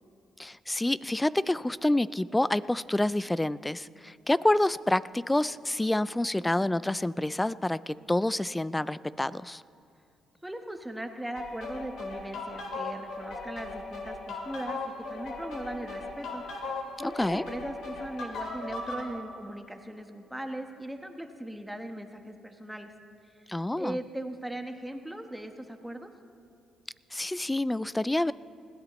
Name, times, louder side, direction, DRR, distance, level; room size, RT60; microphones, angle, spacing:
voice 1, 0.4-9.6 17.0-17.4 23.5-24.0 27.1-28.3, left 1 dB, 10° left, 18 dB, 0.3 m, -28 dB
voice 2, 10.4-22.9 23.8-26.1, right 1 dB, 5° right, 5 dB, 1.2 m, -39 dB
sound 1, 11.4-19.1, left 3 dB, 75° left, 2.3 m, -38 dB
21.0 x 16.0 x 3.1 m, 2.5 s
cardioid pair, 90°, 0 cm